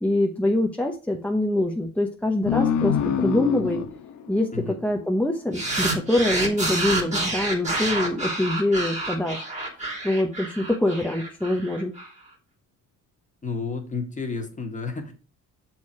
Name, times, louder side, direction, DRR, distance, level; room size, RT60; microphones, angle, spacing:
voice 1, 0.0-3.8 4.3-9.5 10.0-11.9, left 1 dB, 5° left, 1 dB, 0.9 m, -24 dB
sound 1, 2.5-5.6, left 8 dB, 70° left, 1.0 m, -26 dB
sound 2, 5.5-12.1, right 2 dB, 20° right, 2.5 m, -28 dB
voice 2, 13.4-15.1, left 4 dB, 25° left, 4 dB, 1.8 m, -31 dB
6.9 x 4.6 x 4.8 m, 0.35 s
cardioid pair, 105°, 31 cm